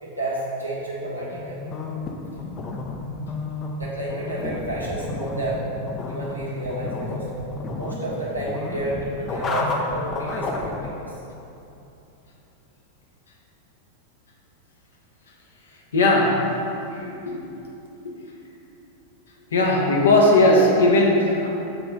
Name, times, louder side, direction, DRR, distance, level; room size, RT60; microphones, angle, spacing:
voice 1, 0.0-1.6 3.8-5.7 6.0-7.3 7.7-11.1, right 1 dB, 85° right, -6 dB, 1.3 m, -30 dB
sound 1, 1.3-10.9, left 2 dB, 25° left, 0.6 m, -31 dB
voice 2, 15.9-16.5 16.9-17.5 18.0-18.1 19.5-21.5, left 2 dB, 65° left, -1 dB, 1.0 m, -18 dB
6.5 x 3.3 x 5.1 m, 2.9 s
figure-of-eight pair, 90°, 0 cm